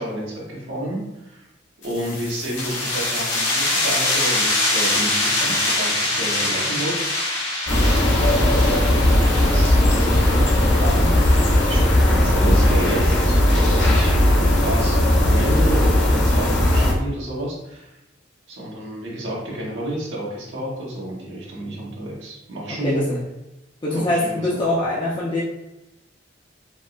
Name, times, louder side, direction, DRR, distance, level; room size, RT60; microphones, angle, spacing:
voice 1, 0.0-1.5 1.8-7.4 8.0-11.2 11.7-11.8 12.1-17.9 18.5-23.2 23.9-24.6, right 1 dB, 85° right, -4 dB, 1.1 m, -30 dB
sound 1, 1.8-13.2, left 2 dB, 85° left, 1.0 m, -25 dB
sound 2, 7.7-16.9, left 1 dB, 70° left, 0.7 m, -17 dB
voice 2, 23.8-25.4, left 1 dB, 25° left, -6 dB, 0.5 m, -23 dB
4.3 x 2.0 x 2.4 m, 0.94 s
head